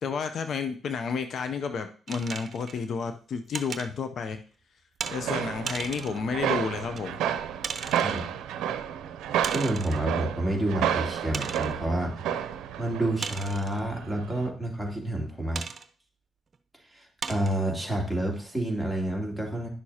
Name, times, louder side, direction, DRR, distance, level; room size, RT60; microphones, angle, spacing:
voice 1, 0.0-4.4 5.1-7.2 7.9-8.2, left 5 dB, 65° left, 8 dB, 0.6 m, -31 dB
sound 1, 2.1-2.8 3.5-3.9 5.0-5.2 5.7-6.2 7.0-7.1 7.6-8.2 9.4-10.1 10.6-10.7 11.3-11.7 13.2-13.8 15.5-15.9 16.5-16.6 17.2-17.6, right 5 dB, 45° right, 0.7 m, -36 dB
sound 2, 5.0-14.5, right 9 dB, 85° right, 0.5 m, -31 dB
voice 2, 9.5-12.3 12.8-15.6 16.9-19.7, right 1 dB, 5° left, -1 dB, 2.8 m, -29 dB
11.0 x 6.4 x 2.9 m, 0.42 s
cardioid pair, 70°, 0 cm